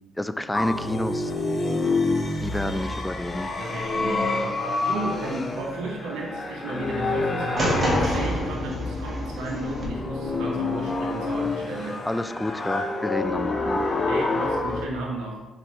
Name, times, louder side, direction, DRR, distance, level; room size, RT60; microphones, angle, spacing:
voice 1, 0.2-1.3 2.4-3.5 12.1-13.8, left 1 dB, 10° left, 11 dB, 0.3 m, -29 dB
sound 1, 0.5-14.9, left 3 dB, 35° left, 0.9 m, -28 dB
voice 2, 3.6-12.0 14.1-15.5, right 2 dB, 90° right, -2 dB, 1.1 m, -33 dB
sound 2, 7.6-9.9, equal, 35° right, 1.9 m, -27 dB
7.4 x 4.2 x 3.3 m, 1.2 s
cardioid pair, 90°, 0 cm